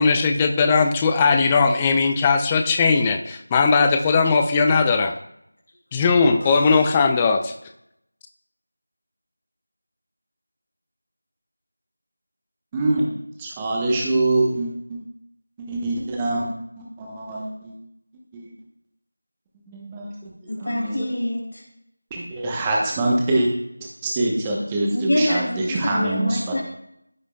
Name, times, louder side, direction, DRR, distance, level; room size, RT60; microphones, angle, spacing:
voice 1, 0.0-5.1 5.9-7.5, left 4 dB, 10° left, 6 dB, 0.3 m, -18 dB
voice 2, 6.4-6.8 20.5-21.6 24.9-26.6, left 1 dB, 60° left, -2 dB, 3.2 m, -25 dB
voice 3, 12.7-13.0 13.4-15.0 15.7-16.5 16.8-17.7 18.3-18.4 19.7-20.1 20.7-20.9 22.1-23.5 24.0-26.4, right 2 dB, 10° right, -2 dB, 0.9 m, -24 dB
14.5 x 5.0 x 2.3 m, 0.79 s
figure-of-eight pair, 170°, 0 cm